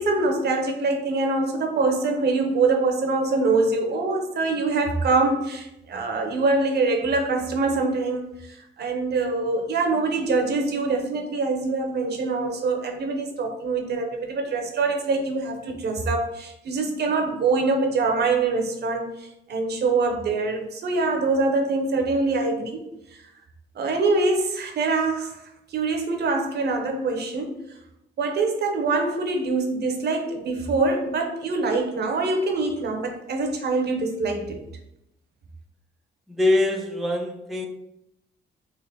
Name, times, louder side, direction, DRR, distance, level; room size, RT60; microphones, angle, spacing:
voice 1, 0.0-22.8 23.7-25.4 25.7-27.6 28.2-34.6, right 3 dB, 55° right, 4 dB, 0.7 m, -24 dB
voice 2, 36.3-37.7, left 2 dB, ahead, 2 dB, 0.4 m, -23 dB
3.7 x 2.5 x 3.4 m, 0.84 s
cardioid pair, 90°, 20 cm